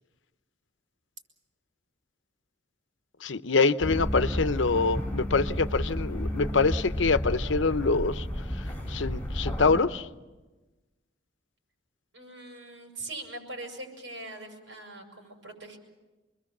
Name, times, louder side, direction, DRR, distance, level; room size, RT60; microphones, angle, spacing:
voice 1, 3.2-8.3 8.9-10.1, left 4 dB, 80° left, 0.8 m, -25 dB
sound 1, 3.8-9.8, equal, 10° left, 4.9 m, -32 dB
voice 2, 12.1-15.8, right 2 dB, 90° right, 7.1 m, -42 dB
27.0 x 21.5 x 7.3 m
head